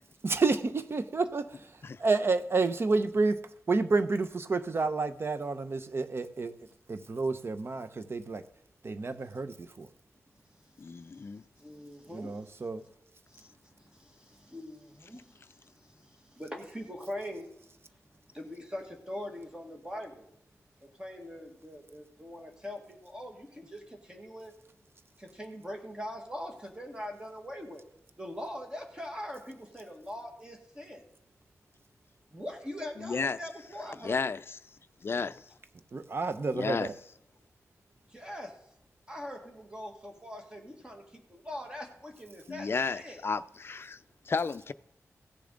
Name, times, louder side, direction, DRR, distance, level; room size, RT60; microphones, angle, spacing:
voice 1, 0.2-1.7 2.0-3.4 3.7-6.5 6.9-8.4 8.8-9.9 12.1-12.8 35.9-36.9, right 3 dB, 45° right, 0.7 m, -29 dB
voice 2, 10.8-11.4 33.0-33.4 34.0-34.4 35.0-35.4 36.5-36.9 42.5-44.0 44.3-44.7, left 4 dB, 45° left, 0.4 m, -32 dB
voice 3, 11.6-12.6 13.3-17.5 18.3-20.3 20.8-24.5 25.2-27.8 28.2-31.0 32.3-34.2 38.1-38.6 39.1-43.2, left 1 dB, 15° right, 1.7 m, -42 dB
16.0 x 6.9 x 3.8 m
wide cardioid pair, 105°, 5 cm